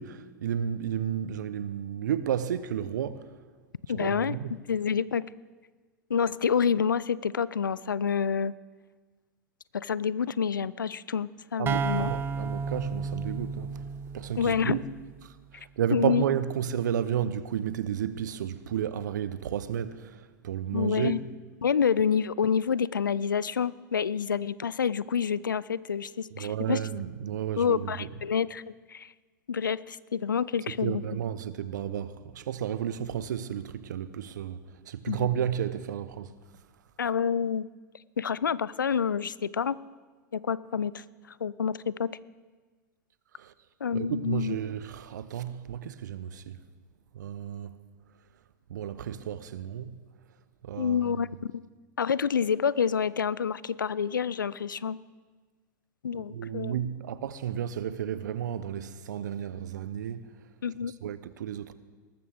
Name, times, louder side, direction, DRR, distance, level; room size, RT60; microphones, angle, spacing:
voice 1, 0.0-3.2 3.9-4.5 11.6-13.8 14.1-14.8 15.2-21.2 26.3-28.1 30.8-34.6 34.9-36.3 43.4-43.5 43.9-46.6 47.1-47.8 48.7-49.9 50.6-51.2 56.1-60.3 61.0-61.7, right 9 dB, 65° right, 0.8 m, -32 dB
voice 2, 3.9-5.3 6.1-8.5 9.7-12.1 14.4-14.8 15.9-16.2 20.7-21.2 21.6-26.8 27.6-28.6 28.9-29.1 29.5-31.0 35.1-35.3 37.0-37.7 38.2-39.8 40.3-41.0 41.4-42.1 43.8-44.5 50.8-51.3 52.0-55.0 56.0-56.7 60.6-60.9, left 7 dB, 85° left, 0.4 m, -28 dB
sound 1, 11.7-15.3, right 5 dB, 20° right, 0.5 m, -33 dB
19.0 x 14.0 x 3.5 m
figure-of-eight pair, 100°, 10 cm